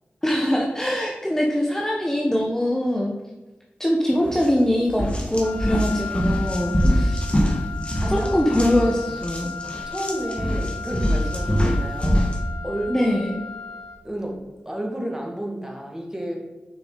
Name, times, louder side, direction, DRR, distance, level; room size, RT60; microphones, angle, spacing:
voice 1, 0.2-3.1 3.8-7.3 8.1-9.5 12.9-13.4, left 1 dB, 10° left, -1 dB, 1.1 m, -23 dB
sound 1, 4.3-4.5 4.9-12.4, equal, 25° left, 1.8 m, -24 dB
Wind instrument woodwind instrument, 5.4-14.1, left 5 dB, 90° left, 1.5 m, -36 dB
voice 2, 8.0-8.4 8.6-8.7 9.9-12.3 12.6-13.2 14.0-14.4 14.7-16.5, right 1 dB, 10° right, 0 dB, 2.0 m, -31 dB
6.9 x 5.7 x 4.0 m, 1.2 s
cardioid pair, 50°, 4 cm